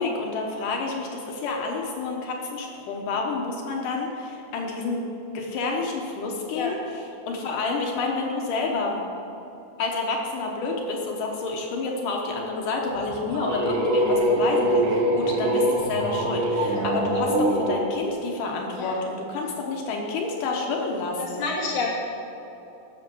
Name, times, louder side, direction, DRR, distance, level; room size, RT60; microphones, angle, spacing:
voice 1, 0.0-5.0 5.3-9.0 9.8-21.4, left 3 dB, 75° left, 0 dB, 2.8 m, -29 dB
sound 1, 12.9-17.8, right 1 dB, 75° right, 3.1 m, -23 dB
voice 2, 21.2-21.9, left 4 dB, 35° left, -4 dB, 2.8 m, -29 dB
18.0 x 7.0 x 6.2 m, 2.9 s
omnidirectional pair, 3.8 m